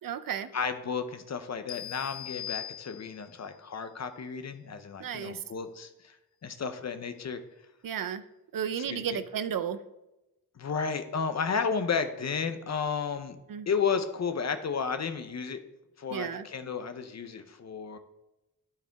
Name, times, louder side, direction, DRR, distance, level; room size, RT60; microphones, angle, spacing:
voice 1, 0.0-0.5 5.0-5.4 7.8-8.2 8.5-9.8 13.5-13.7 16.1-16.4, right 8 dB, 65° right, 11 dB, 0.6 m, -33 dB
voice 2, 0.5-6.2 6.4-7.4 8.7-9.2 10.6-13.4 13.7-15.6 16.0-18.0, left 6 dB, 45° left, 9 dB, 0.7 m, -32 dB
sound 1, 1.7-3.4, left 11 dB, 80° left, 0.5 m, -40 dB
12.0 x 4.9 x 3.5 m, 0.96 s
wide cardioid pair, 125°, 36 cm